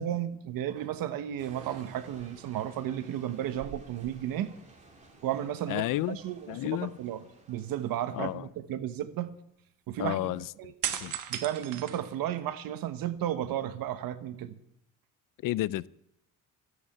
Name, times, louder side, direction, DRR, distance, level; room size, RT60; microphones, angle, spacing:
voice 1, 0.0-4.5 5.2-9.4 9.9-10.7 11.3-14.6, right 11 dB, 80° right, 1.1 m, -34 dB
sound 1, 0.7-1.0 1.4-2.2 3.4-4.7 5.0-5.2 10.8-12.7 13.2-14.1, right 10 dB, 65° right, 1.2 m, -39 dB
sound 2, 1.4-8.3, right 2 dB, 20° right, 2.8 m, -56 dB
voice 2, 5.7-6.2 6.5-6.9 8.1-8.4 10.0-10.4 11.0-11.2 15.4-15.9, left 15 dB, 70° left, 0.5 m, -31 dB
13.5 x 8.1 x 8.4 m
cardioid pair, 130°, 34 cm